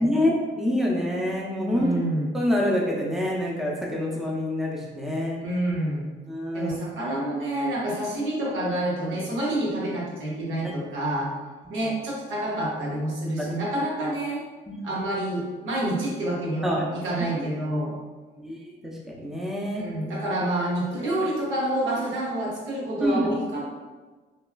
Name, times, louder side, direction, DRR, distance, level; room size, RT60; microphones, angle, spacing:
voice 1, 0.0-1.9 2.3-5.4 6.3-6.8 13.4-13.5 14.7-14.8 16.6-17.0 18.4-18.7 19.1-19.8 23.0-23.3, left 1 dB, ahead, -3 dB, 0.5 m, -26 dB
voice 2, 1.7-2.2 5.4-6.1 6.5-11.3 11.7-14.4 14.8-17.9 19.8-23.6, right 1 dB, 90° right, -5 dB, 0.9 m, -28 dB
3.1 x 2.3 x 2.3 m, 1.4 s
cardioid pair, 90°, 20 cm